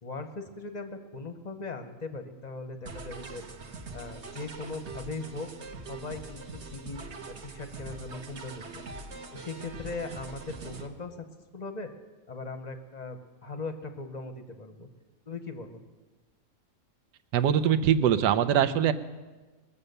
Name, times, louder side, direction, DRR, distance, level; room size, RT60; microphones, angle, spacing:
voice 1, 0.0-3.5 3.9-5.5 5.9-7.0 7.3-8.8 9.3-11.3 11.5-11.9 12.3-14.9 15.3-15.8, left 3 dB, 35° left, 8 dB, 0.7 m, -39 dB
sound 1, 2.8-10.9, right 3 dB, 45° right, 1.2 m, -43 dB
voice 2, 17.3-18.9, right 9 dB, 85° right, 11 dB, 1.3 m, -22 dB
20.5 x 7.1 x 6.7 m, 1.3 s
omnidirectional pair, 1.8 m